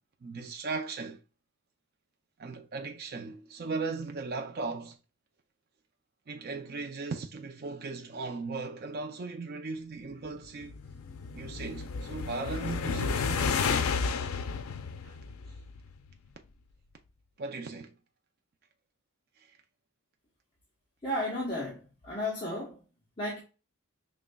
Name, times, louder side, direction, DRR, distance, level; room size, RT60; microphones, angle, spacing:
voice 1, 0.2-1.2 2.4-5.0 6.3-10.8 11.3-13.9 15.0-15.2 17.4-18.0 19.4-19.6, right 4 dB, 45° right, 0.4 m, -37 dB
sound 1, 10.4-15.9, left 5 dB, 90° left, 0.4 m, -32 dB
voice 2, 21.0-22.8 23.2-23.4, left 1 dB, 25° left, 1.0 m, -33 dB
5.0 x 3.2 x 2.2 m
head